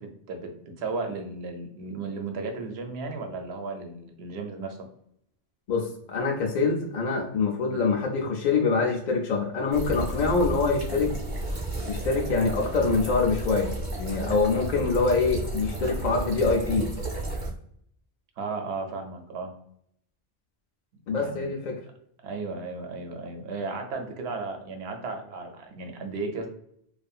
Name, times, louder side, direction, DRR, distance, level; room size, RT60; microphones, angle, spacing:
voice 1, 0.0-4.9 7.7-7.9 14.1-14.5 18.4-19.5 21.2-21.5 22.2-26.5, right 3 dB, 90° right, 4 dB, 0.8 m, -35 dB
voice 2, 5.7-11.1 11.9-16.9 21.1-21.7, left 4 dB, 55° left, -1 dB, 0.5 m, -25 dB
sound 1, 9.7-17.5, right 2 dB, 40° right, 0.8 m, -32 dB
2.6 x 2.4 x 2.3 m, 0.71 s
omnidirectional pair, 1.1 m